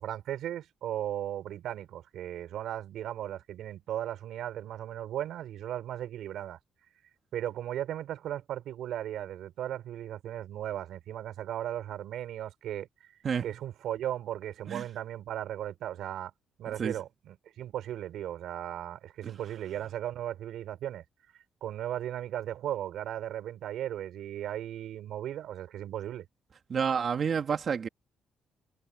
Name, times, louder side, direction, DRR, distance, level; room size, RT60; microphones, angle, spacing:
voice 1, 0.0-6.6 7.3-13.1 13.4-16.3 16.6-21.0 21.6-26.3, right 11 dB, 80° right, 4.9 m, -36 dB
voice 2, 26.7-27.9, right 6 dB, 50° right, 2.4 m, -29 dB
cardioid pair, 90°, 0 cm